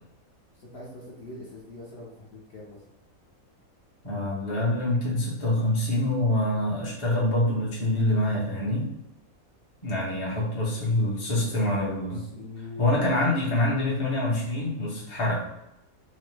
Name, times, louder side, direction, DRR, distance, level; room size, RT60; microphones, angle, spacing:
voice 1, 0.6-2.9 10.7-10.8 11.4-13.1, left 2 dB, 55° left, -5 dB, 0.9 m, -42 dB
voice 2, 4.0-8.9 9.8-12.2 12.8-15.4, left 1 dB, 30° left, -5 dB, 0.7 m, -25 dB
2.9 x 2.0 x 3.1 m, 0.84 s
omnidirectional pair, 1.5 m